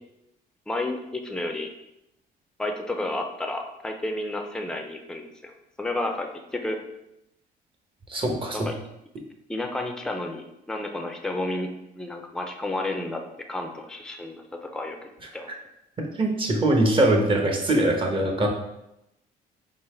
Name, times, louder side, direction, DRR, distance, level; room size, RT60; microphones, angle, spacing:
voice 1, 0.7-1.7 2.6-6.8 8.5-8.8 9.5-13.2 13.5-15.5, left 2 dB, 5° left, 4 dB, 0.5 m, -31 dB
voice 2, 8.1-8.6 16.2-18.5, right 1 dB, 30° right, 2 dB, 0.9 m, -22 dB
3.9 x 2.8 x 4.3 m, 0.87 s
cardioid pair, 110°, 17 cm